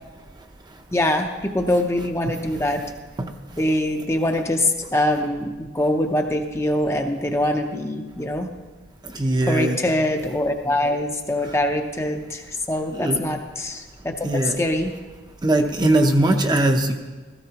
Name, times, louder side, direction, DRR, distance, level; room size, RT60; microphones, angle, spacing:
voice 1, 0.9-2.8 3.6-8.5 9.5-14.9, left 1 dB, 15° left, 3 dB, 0.6 m, -23 dB
voice 2, 9.1-9.8 12.9-13.2 14.2-14.6 15.4-16.9, right 1 dB, 20° right, 4 dB, 0.7 m, -20 dB
16.0 x 14.0 x 2.9 m, 1.3 s
head